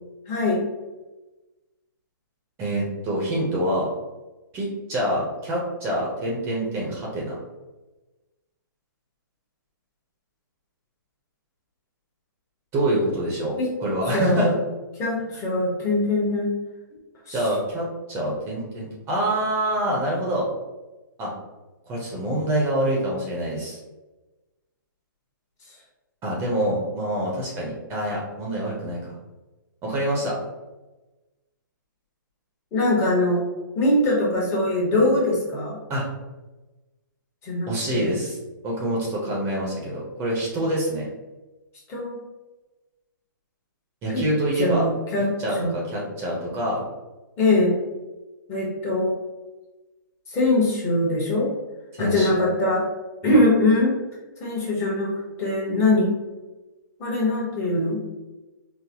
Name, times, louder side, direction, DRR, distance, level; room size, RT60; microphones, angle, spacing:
voice 1, 0.3-0.6 13.6-13.7 14.1-14.6 15.0-16.6 17.3-17.5 32.7-33.4 33.7-35.8 37.4-38.1 41.9-42.2 44.1-44.2 44.6-45.3 45.6-45.7 47.4-47.8 48.5-49.2 50.3-51.5 52.0-52.8 53.2-54.0 54.4-56.1 57.0-58.0, left 2 dB, 20° left, -4 dB, 1.0 m, -22 dB
voice 2, 2.6-3.9 4.5-7.4 12.7-14.6 17.3-20.5 21.2-21.3 21.9-23.8 26.2-29.1 29.8-30.4 35.9-36.0 37.7-38.4 38.6-41.1 44.0-44.8 45.4-46.8 51.9-52.3 53.2-53.4, right 1 dB, 20° right, -3 dB, 0.6 m, -26 dB
3.9 x 2.0 x 2.8 m, 1.1 s
hypercardioid pair, 140°, 11 cm